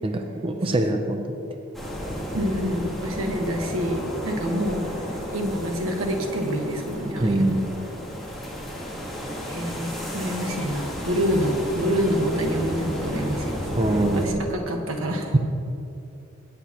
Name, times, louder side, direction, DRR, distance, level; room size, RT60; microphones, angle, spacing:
voice 1, 0.0-1.4 7.2-7.7 13.8-14.4, right 1 dB, 25° right, 4 dB, 0.5 m, -23 dB
sound 1, 1.7-14.3, equal, ahead, 1.5 m, -33 dB
voice 2, 2.3-7.5 9.4-13.7 13.9-15.3, equal, 90° right, 2 dB, 1.4 m, -27 dB
17.0 x 8.3 x 2.9 m, 2.6 s
head